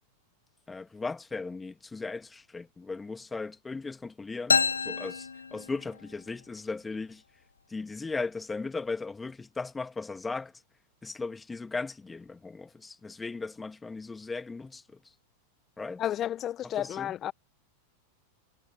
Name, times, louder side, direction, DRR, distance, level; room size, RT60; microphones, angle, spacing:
voice 1, 0.7-7.2 7.7-10.5 11.0-15.0 15.8-16.0 16.6-17.1, left 3 dB, 10° left, 2.1 m, -37 dB
sound 1, 4.5-6.2, left 5 dB, 75° left, 0.5 m, -28 dB
voice 2, 16.0-17.3, left 11 dB, 30° left, 1.1 m, -32 dB
figure-of-eight pair, 90°, 0 cm